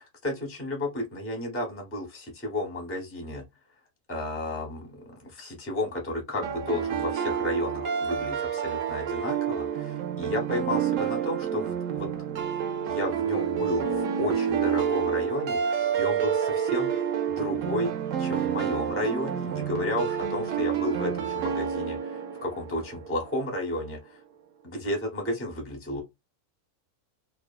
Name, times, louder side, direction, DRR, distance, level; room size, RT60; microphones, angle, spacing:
voice 1, 0.0-3.4 4.1-12.1 12.8-16.9 17.3-24.2 24.6-26.0, left 1 dB, 15° left, 0.6 m, -32 dB
sound 1, 6.4-23.3, right 8 dB, 65° right, 0.9 m, -29 dB
2.7 x 2.3 x 2.4 m
omnidirectional pair, 1.6 m